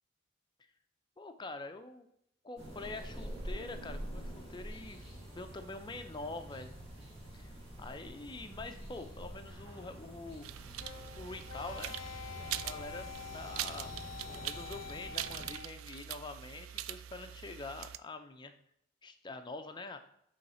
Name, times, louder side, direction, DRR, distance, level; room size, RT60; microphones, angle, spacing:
voice 1, 1.2-2.1 2.4-5.1 5.3-6.7 7.3-7.5 7.8-10.5 11.2-12.2 12.6-13.1 13.3-14.0 14.3-18.5 19.0-20.0, left 3 dB, 20° left, 7 dB, 0.5 m, -45 dB
sound 1, 2.6-15.5, right 1 dB, 30° right, 1.9 m, -47 dB
sound 2, 10.4-18.0, right 12 dB, 80° right, 0.3 m, -43 dB
sound 3, 10.7-15.9, left 8 dB, 75° left, 0.6 m, -47 dB
8.2 x 3.2 x 4.2 m, 0.74 s
head